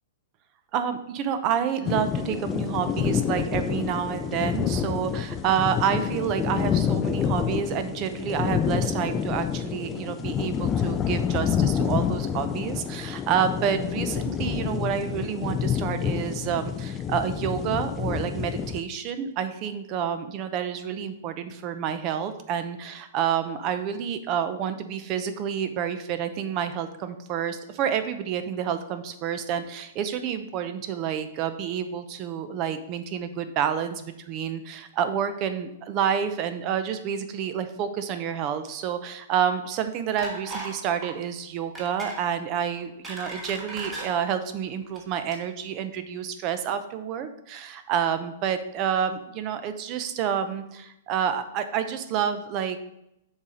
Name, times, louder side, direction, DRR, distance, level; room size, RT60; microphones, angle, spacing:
voice 1, 0.7-52.8, right 8 dB, 30° right, 10 dB, 0.6 m, -29 dB
sound 1, 1.8-18.8, left 8 dB, 15° left, 0.3 m, -28 dB
sound 2, 40.2-40.8 41.0-41.2 41.7-42.2 42.7-44.1 44.8-45.0 45.3-45.4, right 2 dB, 15° right, 1.5 m, -37 dB
7.0 x 4.1 x 5.0 m, 0.82 s
hypercardioid pair, 155°, 0 cm